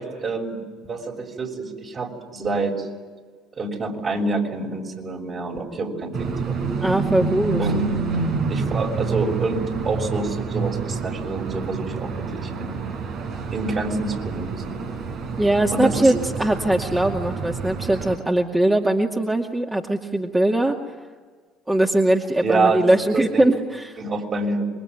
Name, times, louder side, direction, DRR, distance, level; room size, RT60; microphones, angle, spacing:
voice 1, 0.0-2.9 3.5-6.6 7.6-8.0 8.5-12.8 13.5-14.9 15.7-16.1 22.4-23.5 24.0-24.6, right 3 dB, 40° right, 2 dB, 6.6 m, -27 dB
sound 1, 6.1-18.2, right 5 dB, 65° right, 4.6 m, -28 dB
voice 2, 6.8-7.6 15.4-20.8 21.7-24.0, right 1 dB, 15° right, 1 dB, 2.4 m, -21 dB
27.0 x 23.0 x 9.6 m, 1.5 s
hypercardioid pair, 70°, 0 cm